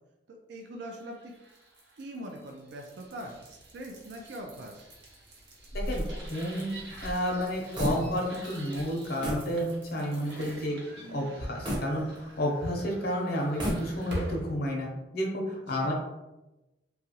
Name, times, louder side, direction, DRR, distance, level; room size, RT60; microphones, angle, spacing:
voice 1, 0.3-1.4 2.0-4.9 15.7-15.9, right 1 dB, 70° right, 2 dB, 0.4 m, -42 dB
sound 1, 0.9-14.5, right 1 dB, 85° right, 0.9 m, -45 dB
sound 2, 5.6-8.5 8.7-8.9 9.2-9.5 10.0-10.1 11.6-12.6 13.4-14.3, equal, 25° right, 0.7 m, -34 dB
voice 2, 5.8-6.7 7.0-10.8 11.1-15.9, equal, 60° left, -1 dB, 0.7 m, -31 dB
2.9 x 2.4 x 2.8 m, 1.0 s
head